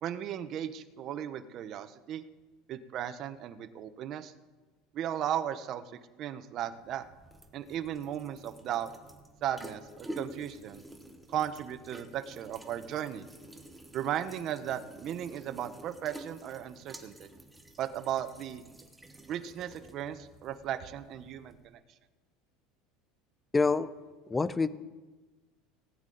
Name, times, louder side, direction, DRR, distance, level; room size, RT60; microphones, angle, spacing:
voice 1, 0.0-2.2 2.7-4.3 4.9-5.8 6.2-7.1 7.5-8.9 9.4-10.8 11.3-13.2 13.9-17.3 17.8-18.6 19.3-21.8, right 10 dB, 40° right, 10 dB, 0.7 m, -36 dB
sound 1, 6.7-21.7, right 1 dB, 5° right, 1.0 m, -50 dB
voice 2, 23.5-23.9 24.3-24.7, left 4 dB, 10° left, 16 dB, 0.4 m, -26 dB
18.5 x 9.1 x 3.9 m, 1.3 s
supercardioid pair, 150°, 0 cm